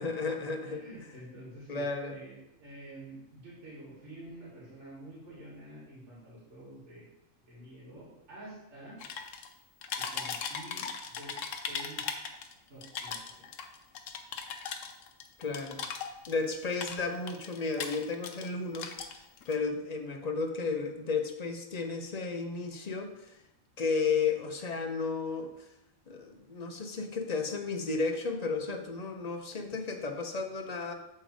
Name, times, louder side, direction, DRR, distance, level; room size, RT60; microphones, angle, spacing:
voice 1, 0.0-0.9 1.7-2.1 15.4-15.8 16.3-23.4 23.8-25.5 26.1-30.9, left 4 dB, 40° left, 4 dB, 0.6 m, -33 dB
voice 2, 0.6-7.1 7.4-9.0 10.0-10.9 11.2-11.3 11.7-12.1 12.7-13.4, right 1 dB, 55° right, -7 dB, 2.5 m, -48 dB
sound 1, 9.0-9.5 9.8-12.5 12.8-16.4 16.7-18.5 18.7-19.5, left 6 dB, 70° left, 1.0 m, -38 dB
7.6 x 3.9 x 4.8 m, 0.88 s
omnidirectional pair, 1.4 m